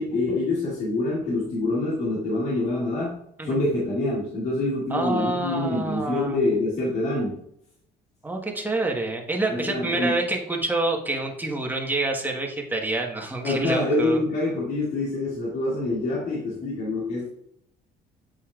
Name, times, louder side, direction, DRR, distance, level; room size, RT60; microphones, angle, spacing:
voice 1, 0.0-7.4 9.5-10.2 13.4-17.3, left 2 dB, 65° left, -6 dB, 2.4 m, -26 dB
voice 2, 4.9-6.4 8.2-14.2, right 2 dB, 10° right, 1 dB, 1.3 m, -27 dB
8.4 x 5.5 x 2.4 m, 0.74 s
cardioid pair, 110°, 17 cm